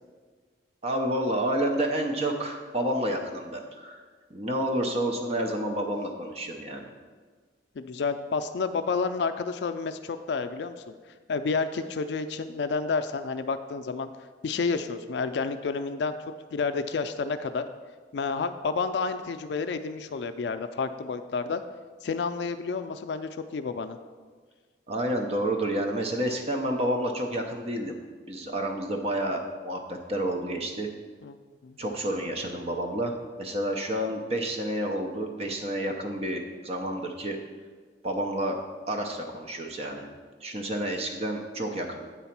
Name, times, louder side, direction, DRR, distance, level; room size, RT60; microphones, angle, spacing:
voice 1, 0.8-4.0 4.3-6.9 24.9-28.0 28.3-30.9 31.8-37.4 38.0-38.6 38.9-40.1 40.4-42.0, right 1 dB, 35° right, 3 dB, 0.6 m, -29 dB
voice 2, 7.8-10.8 11.3-14.1 14.4-16.1 16.5-17.6 18.1-21.6 22.0-24.0 31.2-31.4 31.6-31.8, left 4 dB, 65° left, 9 dB, 0.4 m, -30 dB
8.4 x 4.0 x 5.8 m, 1.5 s
head